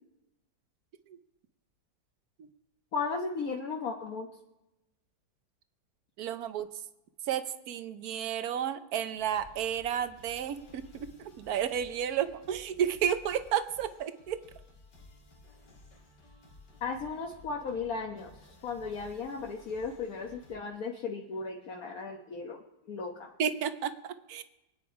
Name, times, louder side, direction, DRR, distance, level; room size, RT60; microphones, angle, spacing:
voice 1, 2.9-4.3 16.8-18.3 18.6-23.3, left 4 dB, 60° left, 0 dB, 1.6 m, -36 dB
voice 2, 6.2-6.7 7.3-14.4 23.4-24.4, right 9 dB, 65° right, 11 dB, 1.3 m, -32 dB
sound 1, 9.2-20.6, left 2 dB, 85° left, 2.7 m, -56 dB
24.5 x 9.1 x 4.8 m, 0.94 s
omnidirectional pair, 1.8 m